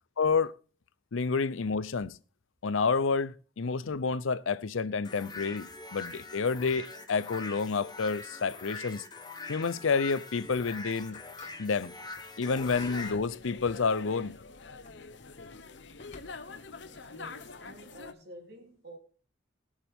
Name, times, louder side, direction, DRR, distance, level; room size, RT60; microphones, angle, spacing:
voice 1, 0.2-0.5 1.1-2.2 2.6-9.0 9.5-11.2 11.6-12.0 12.4-14.3, left 5 dB, 80° left, 0.6 m, -29 dB
sound 1, 5.0-13.1, left 3 dB, 20° left, 1.1 m, -43 dB
sound 2, 10.3-12.9 14.5-16.7, left 2 dB, 35° left, 1.4 m, -57 dB
sound 3, 12.5-18.1, left 4 dB, 60° left, 0.9 m, -46 dB
voice 2, 16.4-19.0, equal, 55° right, 3.3 m, -50 dB
21.5 x 7.3 x 3.6 m
head